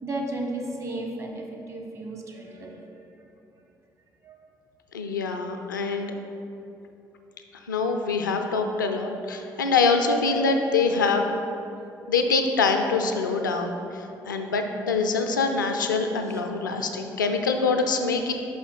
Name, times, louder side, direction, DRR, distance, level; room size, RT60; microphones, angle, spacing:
voice 1, 0.0-2.8 4.2-4.5 11.7-11.8 16.3-16.4, right 2 dB, 30° right, 0 dB, 1.1 m, -34 dB
voice 2, 4.9-6.1 7.7-11.2 12.1-18.3, left 4 dB, 80° left, 5 dB, 0.4 m, -24 dB
5.9 x 5.0 x 4.0 m, 2.7 s
figure-of-eight pair, 40°, 10 cm